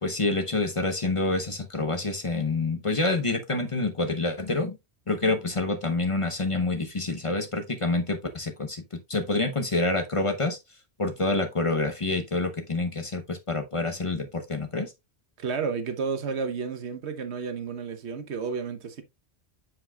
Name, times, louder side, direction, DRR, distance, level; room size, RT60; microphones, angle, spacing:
voice 1, 0.0-4.8 5.1-10.6 11.0-14.9, left 2 dB, 30° left, 0.8 m, -27 dB
voice 2, 15.4-19.0, right 5 dB, 85° right, 1.2 m, -31 dB
7.3 x 6.2 x 2.3 m
omnidirectional pair, 1.1 m